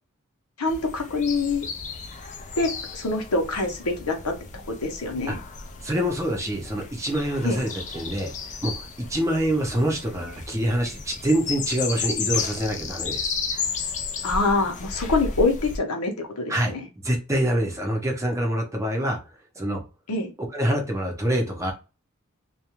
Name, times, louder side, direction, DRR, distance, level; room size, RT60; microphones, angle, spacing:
voice 1, 0.6-1.7 2.6-4.3 4.7-5.4 7.4-7.6 14.2-16.8 20.1-20.3, left 3 dB, 85° left, 0.7 m, -25 dB
sound 1, 0.7-15.8, left 5 dB, 35° left, 0.4 m, -33 dB
voice 2, 5.8-13.3 16.5-16.7 17.0-19.2 19.6-19.8 20.5-21.7, right 1 dB, 15° right, 0.7 m, -26 dB
2.3 x 2.2 x 2.9 m
head